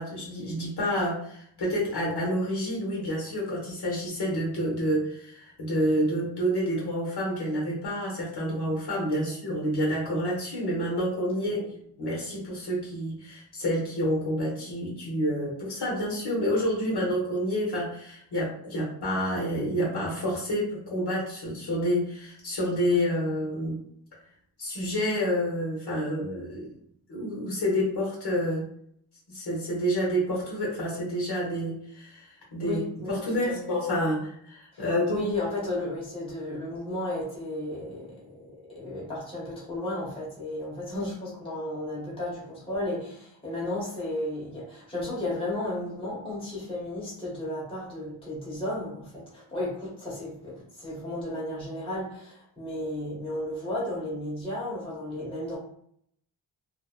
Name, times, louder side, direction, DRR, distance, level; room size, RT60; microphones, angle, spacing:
voice 1, 0.0-11.6 12.0-23.8 24.6-26.7 27.1-28.6 29.3-32.8 33.1-35.2, equal, 55° left, -4 dB, 1.0 m, -28 dB
voice 2, 32.6-33.7 34.7-55.6, left 1 dB, 10° left, -6 dB, 1.0 m, -34 dB
3.0 x 2.0 x 2.4 m, 0.68 s
wide cardioid pair, 160°, 46 cm